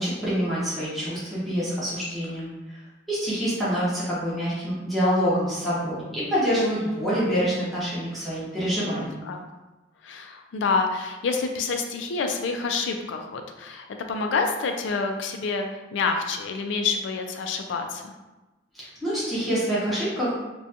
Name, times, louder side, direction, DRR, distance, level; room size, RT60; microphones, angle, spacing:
voice 1, 0.0-2.8 3.1-9.2 18.7-20.3, equal, ahead, -11 dB, 0.7 m, -26 dB
voice 2, 8.6-9.4 10.0-18.1, left 4 dB, 65° left, 4 dB, 0.3 m, -28 dB
2.5 x 2.2 x 2.7 m, 1.1 s
head